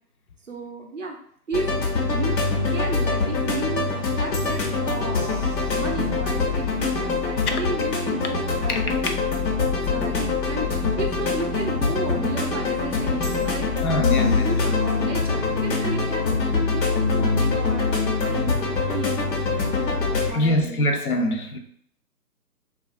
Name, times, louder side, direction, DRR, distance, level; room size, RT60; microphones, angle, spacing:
voice 1, 0.5-1.2 1.5-1.9 2.1-2.4 2.7-9.0 9.7-13.7 14.1-19.5 19.9-21.2, right 2 dB, 50° right, 0.5 m, -33 dB
sound 1, 1.5-20.3, left 4 dB, 80° left, 0.9 m, -24 dB
voice 2, 13.8-14.5 20.3-21.6, left 1 dB, 65° left, 0.5 m, -23 dB
2.7 x 2.3 x 2.5 m
hypercardioid pair, 160°, 49 cm